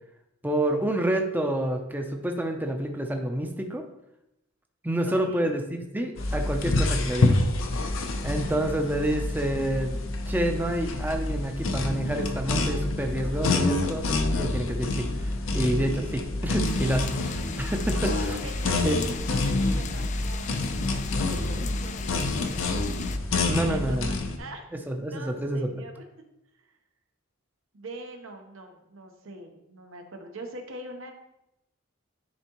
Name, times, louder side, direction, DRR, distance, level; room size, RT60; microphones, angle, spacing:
voice 1, 0.4-3.8 4.8-7.4 8.2-10.0 10.3-14.0 14.4-18.4 18.8-19.1 23.5-24.1 24.9-25.8, right 1 dB, 10° right, 4 dB, 0.5 m, -28 dB
voice 2, 5.0-5.5 17.9-19.0 19.3-22.6 23.6-26.0 26.6-26.7 27.7-31.1, right 1 dB, 75° right, 4 dB, 0.9 m, -43 dB
sound 1, 6.2-24.4, left 2 dB, 75° left, 0.6 m, -27 dB
sound 2, 16.6-23.2, left 7 dB, 35° left, 0.4 m, -40 dB
10.5 x 3.6 x 3.0 m, 0.86 s
head